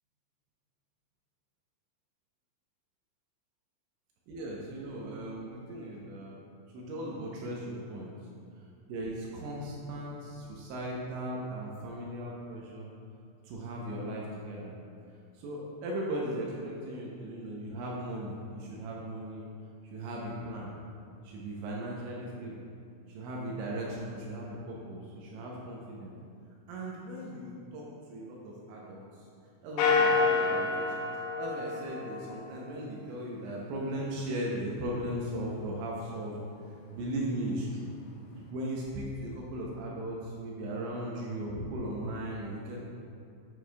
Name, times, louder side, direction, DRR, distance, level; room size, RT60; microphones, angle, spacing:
voice 1, 4.3-6.4 6.7-8.1 8.9-12.9 13.5-14.7 15.4-19.5 19.9-20.7 21.2-22.7 23.1-26.1 26.7-29.0 29.6-30.9 31.4-36.4 36.9-37.9 38.4-42.8, right 1 dB, 85° right, -3 dB, 2.7 m, -37 dB
sound 1, 29.8-32.5, left 4 dB, 80° left, 2.8 m, -28 dB
9.0 x 6.5 x 2.3 m, 2.5 s
omnidirectional pair, 5.9 m